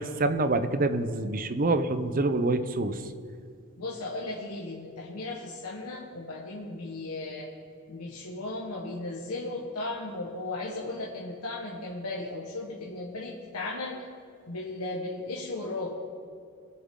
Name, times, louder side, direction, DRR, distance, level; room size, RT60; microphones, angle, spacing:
voice 1, 0.0-3.0, right 2 dB, 40° right, 11 dB, 0.6 m, -26 dB
voice 2, 3.8-7.5 7.9-14.0 14.5-15.9, left 2 dB, 80° left, -3 dB, 1.3 m, -36 dB
21.0 x 7.1 x 3.7 m, 2.3 s
head